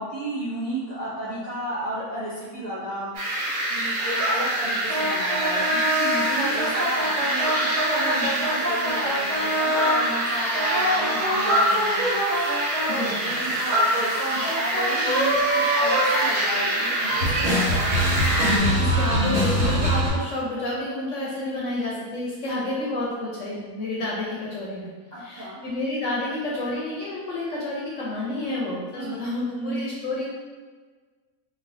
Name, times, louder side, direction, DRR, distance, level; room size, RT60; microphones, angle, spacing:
voice 1, 0.0-3.1 3.7-12.5 12.8-17.9 25.1-25.6 28.9-29.9, right 1 dB, 45° right, -10 dB, 0.5 m, -33 dB
sound 1, 3.1-18.6, right 1 dB, 70° right, 1.1 m, -25 dB
sound 2, 4.9-10.0 10.5-16.8 17.1-20.1, equal, 90° right, 1.5 m, -25 dB
voice 2, 18.4-24.9 25.2-30.3, left 2 dB, 65° left, -5 dB, 0.8 m, -30 dB
3.1 x 2.4 x 2.5 m, 1.4 s
omnidirectional pair, 1.7 m